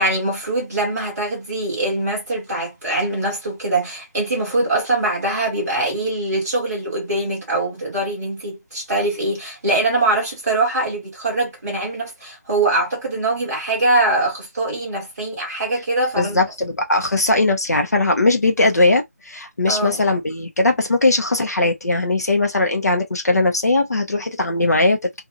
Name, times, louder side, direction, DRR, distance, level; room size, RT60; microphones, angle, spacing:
voice 1, 0.0-16.4 19.7-20.0, right 2 dB, ahead, 0.4 m, -22 dB
voice 2, 16.2-25.2, left 2 dB, 75° left, 1.0 m, -19 dB
2.7 x 2.7 x 2.4 m
figure-of-eight pair, 180°, 9 cm